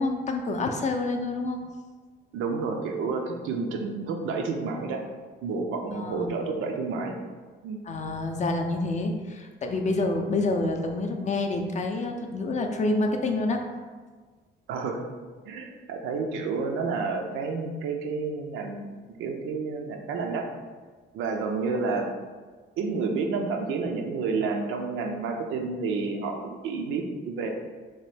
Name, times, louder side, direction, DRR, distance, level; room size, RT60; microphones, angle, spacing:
voice 1, 0.0-1.6 5.9-6.3 7.9-13.6, left 2 dB, 35° left, 4 dB, 0.4 m, -28 dB
voice 2, 2.3-5.0 5.4-7.1 7.6-7.8 14.7-15.0 15.5-18.8 19.2-20.5 21.1-22.1 22.8-27.5, right 4 dB, 85° right, 3 dB, 0.4 m, -30 dB
3.0 x 2.2 x 3.2 m, 1.4 s
cardioid pair, 90°, 20 cm